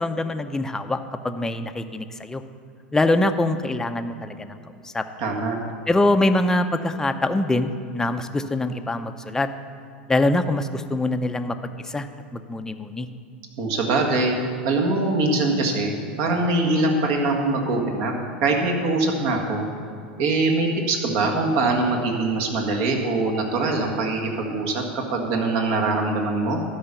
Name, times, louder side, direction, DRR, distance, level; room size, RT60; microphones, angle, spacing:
voice 1, 0.0-2.4 2.9-4.6 4.9-5.0 5.9-9.5 10.1-11.6 11.9-12.1 12.3-13.1, left 2 dB, 10° left, 8 dB, 0.6 m, -23 dB
voice 2, 5.2-5.6 13.6-14.4 14.6-18.1 18.4-19.7 20.2-26.6, right 2 dB, 55° right, 1 dB, 1.7 m, -23 dB
12.5 x 5.5 x 6.9 m, 2.3 s
hypercardioid pair, 90°, 6 cm